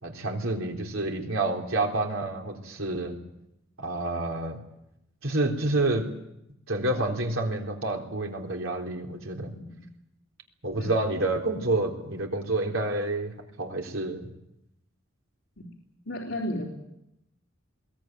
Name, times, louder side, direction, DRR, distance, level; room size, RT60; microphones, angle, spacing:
voice 1, 0.0-3.2 3.8-4.6 5.2-6.1 6.7-9.5 10.6-13.3 13.6-14.3, right 2 dB, 80° right, 1 dB, 3.8 m, -28 dB
voice 2, 9.5-9.9 10.8-10.9 15.6-15.7 16.0-16.6, left 1 dB, 75° left, -2 dB, 3.4 m, -34 dB
22.0 x 17.5 x 9.2 m, 0.86 s
head